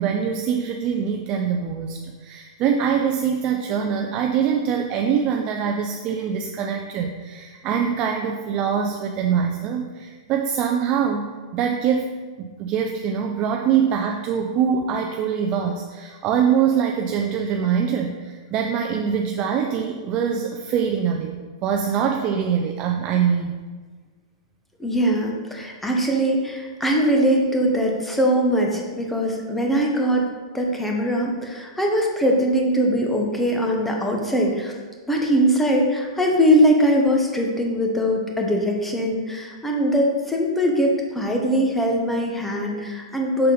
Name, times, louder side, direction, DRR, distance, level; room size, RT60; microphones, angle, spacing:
voice 1, 0.0-11.2 11.5-12.1 12.4-23.6, right 7 dB, 40° right, 2 dB, 0.5 m, -23 dB
voice 2, 24.8-30.3 30.5-34.8 35.1-43.5, equal, 5° left, 0 dB, 1.0 m, -21 dB
6.5 x 4.0 x 4.0 m, 1.4 s
hypercardioid pair, 120°, 3 cm